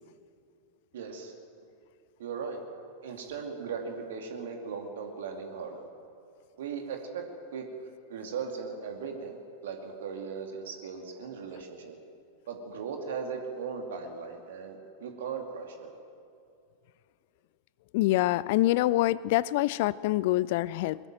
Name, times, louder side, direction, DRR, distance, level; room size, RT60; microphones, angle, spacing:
voice 1, 0.9-1.3 2.2-2.6 3.0-5.9 6.6-7.2 7.5-7.6 8.1-9.4 9.6-11.9 12.5-15.9, right 6 dB, 60° right, 3 dB, 2.4 m, -38 dB
voice 2, 17.9-21.0, left 17 dB, 50° left, 20 dB, 0.4 m, -25 dB
22.0 x 13.5 x 9.1 m, 2.5 s
figure-of-eight pair, 90°, 0 cm